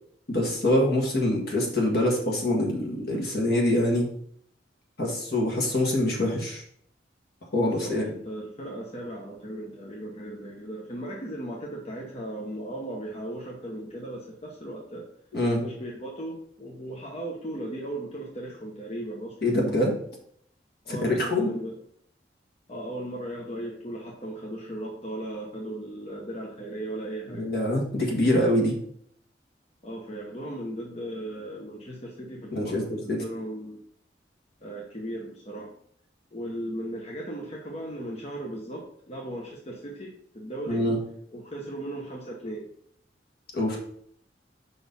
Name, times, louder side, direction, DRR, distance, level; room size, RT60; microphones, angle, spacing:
voice 1, 0.3-4.1 5.0-6.6 7.5-8.1 15.3-15.6 19.4-20.0 20.9-21.5 27.3-28.7 32.5-33.2 40.7-41.0 43.5-43.8, left 1 dB, 60° left, 0 dB, 1.8 m, -25 dB
voice 2, 7.6-15.1 15.6-19.4 20.8-21.8 22.7-27.5 29.8-33.8 34.6-35.7 36.3-40.9 41.3-42.7, right 1 dB, 35° left, -2 dB, 1.0 m, -37 dB
5.5 x 4.2 x 5.4 m, 0.66 s
head